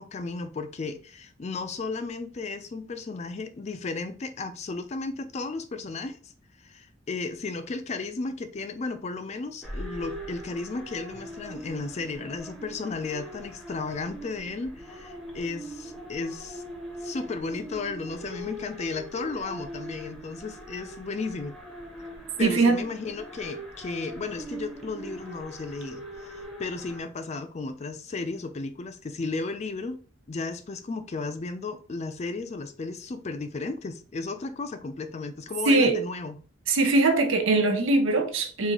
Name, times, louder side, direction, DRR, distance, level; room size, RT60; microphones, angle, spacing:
voice 1, 0.0-6.3 6.6-16.6 17.0-21.6 22.4-30.0 30.3-36.4, left 3 dB, 35° left, 0.4 m, -34 dB
sound 1, 9.6-27.0, equal, ahead, 0.7 m, -41 dB
voice 2, 22.4-22.8 35.7-36.0 36.7-38.7, right 3 dB, 90° right, 0.6 m, -21 dB
3.9 x 2.6 x 3.0 m
head